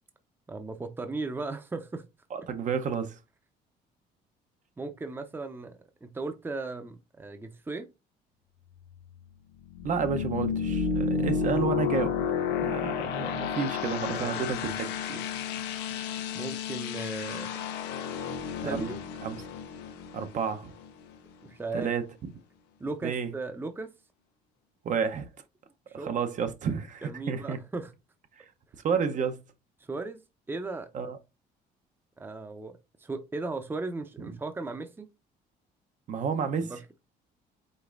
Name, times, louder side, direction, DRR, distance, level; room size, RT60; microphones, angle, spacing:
voice 1, 0.5-2.0 4.8-7.9 14.1-14.5 16.3-17.7 18.6-19.0 21.4-21.9 22.8-23.9 25.9-26.2 27.0-27.9 29.8-30.2 30.5-30.9 32.2-35.1 36.6-36.8, right 3 dB, 15° right, 0.6 m, -37 dB
voice 2, 2.3-3.2 9.8-12.2 12.6-15.2 18.6-18.9 19.2-19.3 20.1-20.7 21.7-22.0 23.0-23.3 24.8-25.3 26.0-27.6 28.8-29.4 30.9-31.2 36.1-36.7, right 6 dB, 50° right, 0.7 m, -30 dB
sound 1, 8.7-21.3, left 6 dB, 90° left, 0.8 m, -32 dB
5.2 x 3.6 x 2.5 m
cardioid pair, 110°, 17 cm